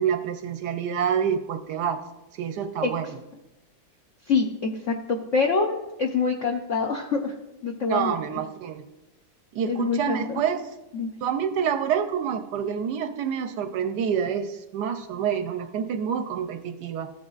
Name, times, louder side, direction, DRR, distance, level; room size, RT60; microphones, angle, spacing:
voice 1, 0.0-2.0 2.3-3.1 7.9-8.8 9.5-10.6 11.2-17.1, right 8 dB, 75° right, 8 dB, 1.0 m, -27 dB
voice 2, 4.3-7.3 7.6-8.2 9.7-10.4 10.9-11.1, left 4 dB, 70° left, 2 dB, 0.7 m, -25 dB
14.0 x 8.6 x 2.4 m, 0.99 s
omnidirectional pair, 2.1 m